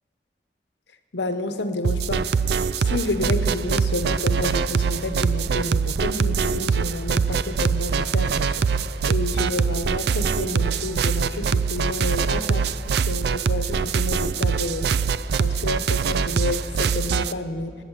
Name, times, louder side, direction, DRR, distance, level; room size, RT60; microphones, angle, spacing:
voice 1, 1.1-2.2 2.8-8.7 9.0-12.6 13.1-14.9 15.4-17.8, left 2 dB, 90° left, 9 dB, 1.0 m, -29 dB
sound 1, 1.8-17.3, right 5 dB, 65° right, 0.4 m, -23 dB
18.5 x 8.9 x 7.4 m, 2.2 s
head